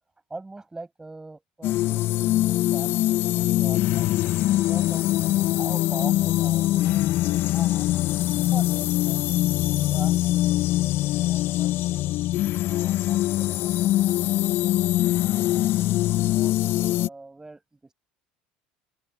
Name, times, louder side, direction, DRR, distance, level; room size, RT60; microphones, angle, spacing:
voice 1, 0.3-5.2 5.6-7.9 8.5-9.2 9.6-10.5 11.2-12.2 12.6-14.3 15.2-15.7 16.1-17.9, right 2 dB, 15° right, 7.8 m, -43 dB
sound 1, 1.6-17.1, left 15 dB, 55° left, 1.4 m, -23 dB
open air
hypercardioid pair, 70°, 5 cm